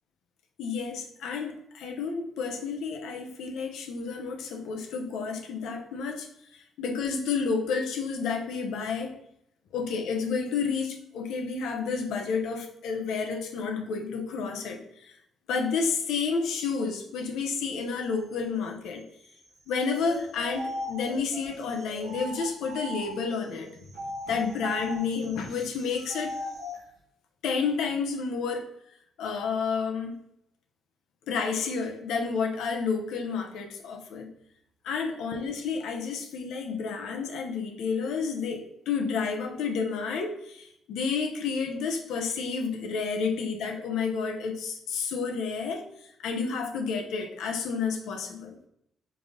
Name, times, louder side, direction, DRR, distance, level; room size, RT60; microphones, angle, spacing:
voice 1, 0.6-9.2 9.7-15.1 15.5-19.0 19.7-23.7 24.3-26.3 27.4-28.7 29.2-30.2 31.3-34.3 34.8-45.9 46.2-48.6, left 5 dB, 85° left, 3 dB, 0.7 m, -30 dB
sound 1, 20.0-23.4 23.9-26.8, equal, 85° right, 1.3 m, -38 dB
3.8 x 3.4 x 3.6 m, 0.75 s
cardioid pair, 90°, 0 cm